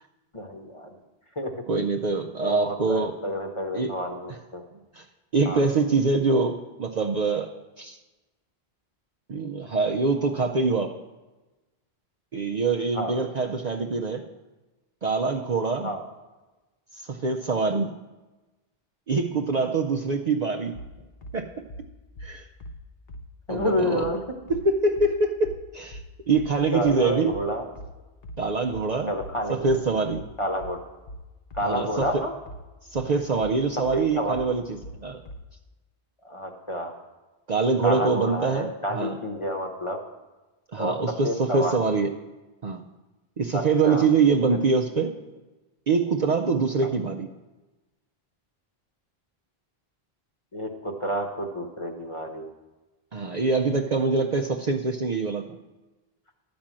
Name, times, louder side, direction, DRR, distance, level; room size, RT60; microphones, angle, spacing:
voice 1, 0.3-0.9 1.4-1.5 2.4-4.6 5.4-5.6 12.9-13.2 15.8-16.0 23.5-24.2 26.7-27.7 29.1-29.6 30.4-30.8 31.6-32.3 33.9-34.4 36.2-36.9 37.8-40.0 40.8-40.9 41.2-41.8 43.5-44.1 50.5-52.5, equal, 30° left, 3 dB, 1.1 m, -29 dB
voice 2, 1.7-3.1 3.7-3.9 4.3-4.4 4.7-5.0 5.3-8.0 9.3-11.0 12.3-14.2 15.0-15.9 16.9-17.9 19.1-20.8 21.3-21.5 22.2-22.5 23.5-24.1 24.5-26.0 26.3-27.4 28.4-29.1 29.5-30.3 31.6-32.2 32.9-35.2 37.5-39.2 40.7-42.1 42.6-42.8 43.4-45.1 45.9-47.3 53.1-55.6, right 4 dB, 50° right, 2 dB, 0.6 m, -24 dB
sound 1, 20.7-35.5, equal, 70° left, 0.9 m, -42 dB
11.5 x 5.2 x 7.4 m, 1.1 s
omnidirectional pair, 1.0 m